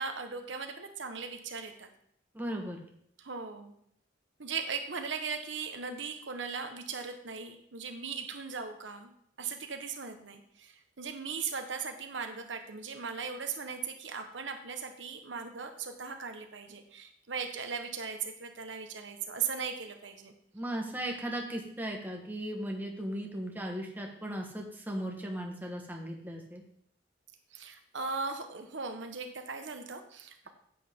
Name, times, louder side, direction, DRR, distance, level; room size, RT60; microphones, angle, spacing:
voice 1, 0.0-1.9 3.2-3.7 4.4-9.1 9.4-20.3 27.5-30.5, right 5 dB, 90° right, 6 dB, 1.2 m, -38 dB
voice 2, 2.3-2.8 20.5-26.6, right 1 dB, 10° right, 0 dB, 1.4 m, -37 dB
9.9 x 8.4 x 3.7 m, 0.68 s
head